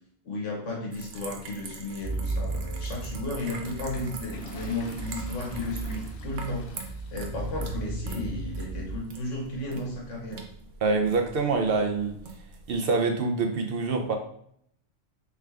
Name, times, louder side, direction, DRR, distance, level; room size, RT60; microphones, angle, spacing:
voice 1, 0.2-6.7 7.1-10.4, left 2 dB, 90° left, 0 dB, 1.4 m, -34 dB
sound 1, 0.9-12.8, right 4 dB, 85° right, 1.0 m, -44 dB
sound 2, 2.0-9.0, right 2 dB, 25° right, 1.1 m, -35 dB
Toilet flush, 3.4-8.5, left 4 dB, 65° left, 0.9 m, -48 dB
voice 2, 10.8-12.2 12.7-14.2, right 4 dB, 60° right, 4 dB, 0.7 m, -25 dB
3.5 x 3.4 x 3.3 m, 0.67 s
omnidirectional pair, 1.2 m